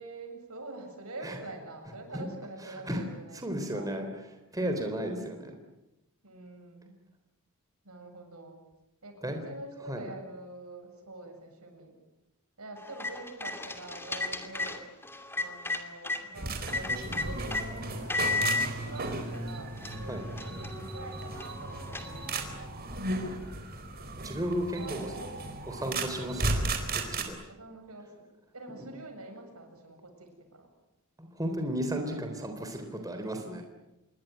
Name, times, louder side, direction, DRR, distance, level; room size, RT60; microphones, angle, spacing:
voice 1, 0.0-4.0 6.2-7.0 7.8-8.6 9.0-11.9 12.6-14.9 15.4-22.7 23.0-23.3 24.8-25.3 27.5-30.7, right 2 dB, 75° right, 5 dB, 7.6 m, -46 dB
voice 2, 3.3-4.2 4.5-5.5 9.2-9.4 9.9-10.0 20.1-20.2 24.2-25.1 25.7-27.4 31.2-33.6, equal, 15° right, 4 dB, 3.8 m, -34 dB
sound 1, 12.8-16.2 16.7-17.7 18.1-18.7 19.3-19.4 19.8-22.6, left 3 dB, 10° left, 2.5 m, -34 dB
sound 2, 16.3-27.2, right 2 dB, 45° right, 4.3 m, -35 dB
27.5 x 23.0 x 9.5 m, 0.95 s
head